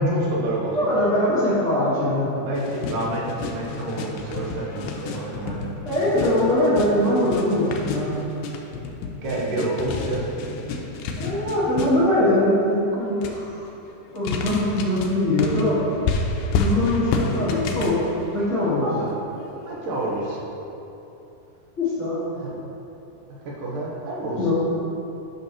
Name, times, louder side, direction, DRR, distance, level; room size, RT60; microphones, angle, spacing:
voice 1, 0.0-0.9 2.4-5.7 9.2-10.2 18.8-19.1 19.6-20.4 22.4-22.5 23.6-24.4, right 1 dB, 75° right, -4 dB, 2.6 m, -28 dB
voice 2, 0.7-2.3 5.8-8.2 11.2-13.5 14.1-15.8 16.6-18.0 18.3-18.8 21.8-22.2 24.4-24.5, left 1 dB, 30° left, -12 dB, 1.4 m, -22 dB
sound 1, 2.5-12.3 13.0-13.4 14.2-18.8 20.3-20.4, left 3 dB, 80° left, 2.2 m, -30 dB
10.5 x 6.0 x 3.0 m, 3.0 s
omnidirectional pair, 4.0 m